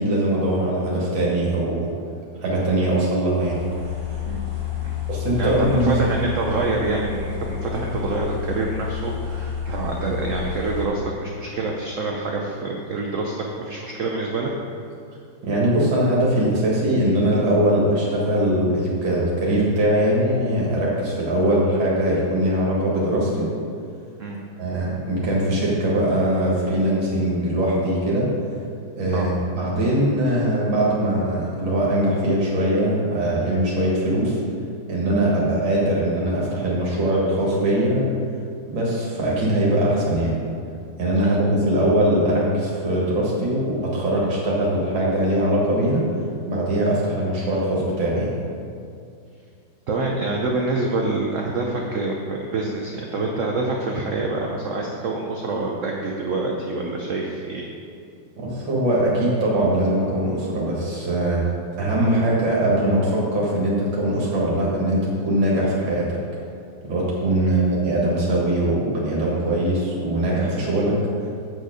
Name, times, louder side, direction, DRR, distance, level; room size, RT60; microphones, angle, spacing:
voice 1, 0.0-1.9 2.4-3.6 5.1-6.0 15.4-23.5 24.6-28.3 29.0-34.4 34.9-38.1 38.7-40.4 41.0-46.1 46.5-48.4 58.4-61.4 61.8-66.2 66.8-71.0, right 1 dB, 80° right, -5 dB, 2.4 m, -21 dB
sound 1, 3.4-10.9, left 7 dB, 15° left, 1.8 m, -30 dB
voice 2, 4.7-5.0 5.4-14.5 24.2-24.4 29.1-29.3 49.9-57.7 67.4-67.6, right 3 dB, 60° right, 0 dB, 0.8 m, -26 dB
8.3 x 6.5 x 4.9 m, 2.4 s
omnidirectional pair, 2.1 m